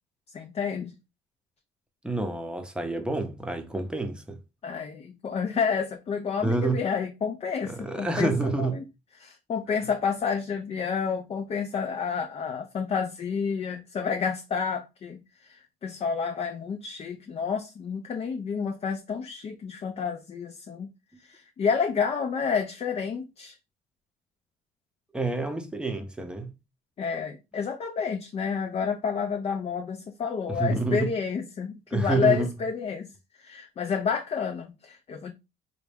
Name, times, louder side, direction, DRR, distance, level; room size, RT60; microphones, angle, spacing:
voice 1, 0.3-0.9 4.6-8.8 9.2-20.9 21.2-23.6 27.0-33.1 33.4-35.3, left 6 dB, 35° left, 0.5 m, -30 dB
voice 2, 2.0-4.4 6.4-6.8 7.6-8.8 25.1-26.5 30.5-31.1 31.9-32.5, right 3 dB, 5° right, 0.7 m, -28 dB
4.0 x 2.3 x 3.4 m
cardioid pair, 110°, 17 cm